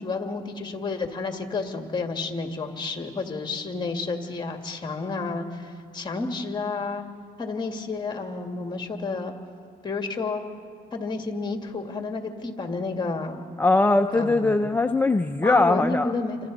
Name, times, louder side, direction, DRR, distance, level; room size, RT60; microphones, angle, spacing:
voice 1, 0.0-7.0 7.4-9.3 9.8-10.4 10.9-13.4 14.1-14.7 15.4-16.4, left 3 dB, 25° left, 4 dB, 2.1 m, -30 dB
voice 2, 13.6-16.1, left 2 dB, 10° left, 6 dB, 0.6 m, -21 dB
29.0 x 25.5 x 4.1 m, 2.2 s
cardioid pair, 110°, 17 cm